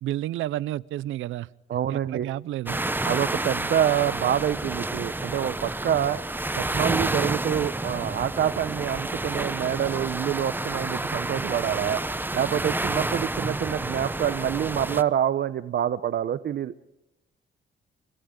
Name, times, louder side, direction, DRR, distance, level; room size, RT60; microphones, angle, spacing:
voice 1, 0.0-1.5 1.9-2.8, right 14 dB, 80° right, 21 dB, 0.7 m, -31 dB
voice 2, 1.7-2.3 3.0-6.2 6.6-12.0 12.3-16.7, right 10 dB, 55° right, 13 dB, 0.9 m, -26 dB
sound 1, 2.7-15.0, right 2 dB, 10° right, 0.9 m, -30 dB
30.0 x 27.5 x 3.9 m, 1.0 s
cardioid pair, 90°, 20 cm